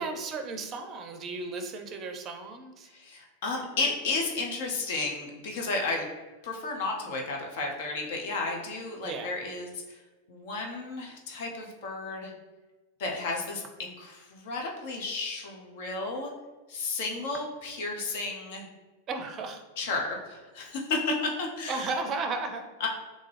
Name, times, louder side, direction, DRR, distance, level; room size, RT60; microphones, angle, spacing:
voice 1, 0.0-2.9 9.0-9.3 19.1-19.6 21.7-22.7, right 3 dB, 30° right, 5 dB, 0.5 m, -34 dB
voice 2, 2.9-6.1 6.4-10.0 10.3-12.3 13.0-16.3 16.7-18.7 19.8-21.9 22.8-22.9, left 3 dB, 55° left, 1 dB, 0.7 m, -33 dB
3.5 x 2.6 x 3.3 m, 1.2 s
figure-of-eight pair, 90°, 0 cm